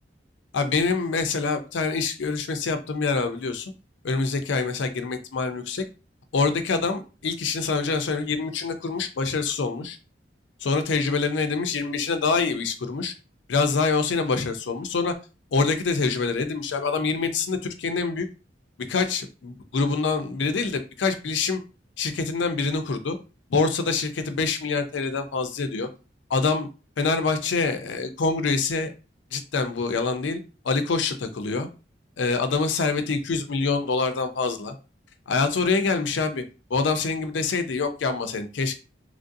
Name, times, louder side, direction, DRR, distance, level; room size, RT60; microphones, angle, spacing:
voice 1, 0.5-3.7 4.0-5.8 6.3-10.0 10.6-13.1 13.5-15.1 15.5-18.3 18.9-21.6 22.0-23.2 23.5-25.9 26.3-26.7 27.0-28.9 29.3-30.4 30.6-31.7 32.2-34.7 35.3-36.4 36.7-38.7, left 4 dB, 80° left, 8 dB, 0.5 m, -25 dB
3.1 x 2.5 x 2.6 m, 0.32 s
head